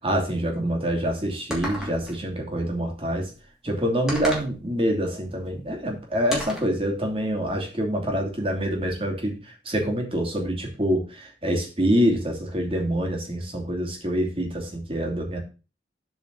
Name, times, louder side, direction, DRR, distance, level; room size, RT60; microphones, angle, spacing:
voice 1, 0.0-3.3 3.6-15.4, equal, 30° right, 1 dB, 2.7 m, -26 dB
sound 1, 1.5-2.2 4.1-4.5 6.3-6.7, equal, ahead, 2.6 m, -32 dB
8.0 x 4.9 x 6.8 m, 0.32 s
head